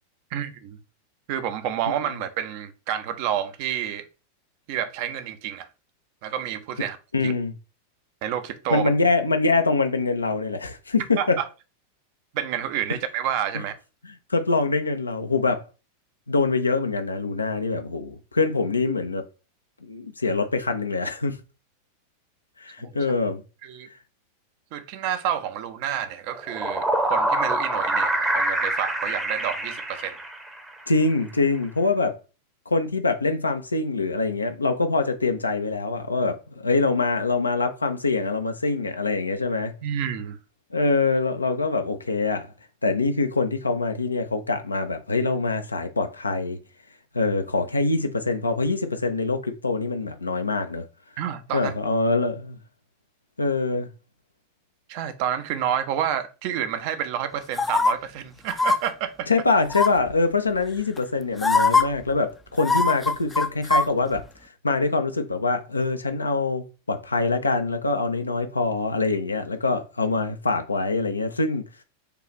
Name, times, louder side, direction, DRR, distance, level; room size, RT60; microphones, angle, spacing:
voice 1, 0.3-0.8 1.3-4.0 4.7-5.7 6.2-7.0 7.2-7.3 8.2-8.9 11.2-11.5 12.3-13.8 22.8-23.0 23.6-23.9 24.7-30.2 39.8-40.4 51.2-51.7 54.9-59.3, right 10 dB, 45° right, 0.6 m, -29 dB
voice 2, 7.1-7.5 8.7-11.4 14.3-15.6 16.3-19.2 19.8-21.4 22.6-23.4 30.9-32.2 32.7-39.7 40.7-42.5 42.8-46.6 47.1-50.8 51.5-52.6 53.4-53.9 59.3-64.2 64.6-71.6, left 3 dB, 80° left, 0.5 m, -24 dB
sound 1, 26.3-30.7, right 1 dB, 10° right, 0.8 m, -25 dB
sound 2, 57.6-57.9 58.5-58.8 59.7-60.1 61.0-61.1 61.4-61.8 62.6-63.9 64.2-64.3, left 3 dB, 10° left, 0.4 m, -21 dB
6.6 x 2.4 x 3.0 m
figure-of-eight pair, 90°, 0 cm